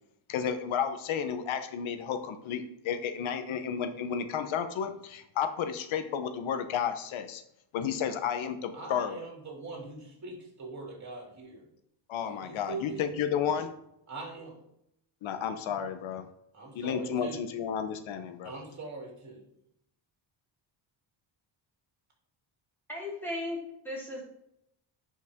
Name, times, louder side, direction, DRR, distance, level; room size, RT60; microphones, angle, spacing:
voice 1, 0.3-7.4 7.7-9.2 12.1-13.7 15.2-16.2 16.7-18.5, left 8 dB, 80° left, 9 dB, 1.1 m, -32 dB
voice 2, 8.7-11.7 12.3-13.0 14.1-14.6 16.5-17.4 18.4-19.4, right 3 dB, 35° right, 0 dB, 3.2 m, -42 dB
voice 3, 22.9-24.2, left 1 dB, 5° left, -6 dB, 3.6 m, -36 dB
10.5 x 5.4 x 3.6 m, 0.77 s
cardioid pair, 150°, 47 cm